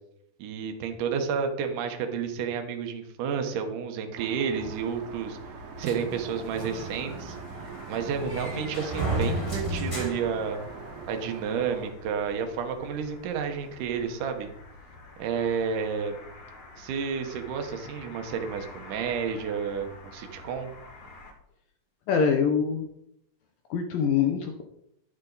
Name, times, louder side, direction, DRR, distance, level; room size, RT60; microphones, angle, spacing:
voice 1, 0.4-7.4 7.9-10.6 11.1-14.5 15.2-16.1 16.8-20.7, right 6 dB, 70° right, 5 dB, 2.0 m, -31 dB
Aircraft, 4.2-11.9, right 7 dB, 90° right, 3.4 m, -44 dB
sound 1, 4.6-21.3, left 3 dB, 60° left, 3.8 m, -48 dB
sound 2, 5.8-11.1, right 2 dB, 10° left, 2.5 m, -33 dB
voice 2, 22.1-22.9 23.7-24.6, left 6 dB, 75° left, 4 dB, 2.1 m, -24 dB
11.5 x 8.8 x 4.0 m, 0.75 s
omnidirectional pair, 5.2 m